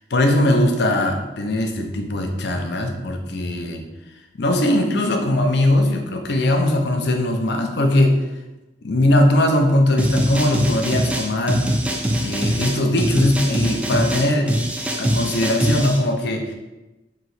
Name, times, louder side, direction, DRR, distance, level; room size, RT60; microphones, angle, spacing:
voice 1, 0.1-3.8 4.4-8.2 8.8-11.7 12.2-14.6 15.0-16.6, left 1 dB, 60° left, 3 dB, 0.5 m, -20 dB
sound 1, 10.0-16.0, equal, 5° right, 0.3 m, -22 dB
3.1 x 2.8 x 4.0 m, 1.1 s
head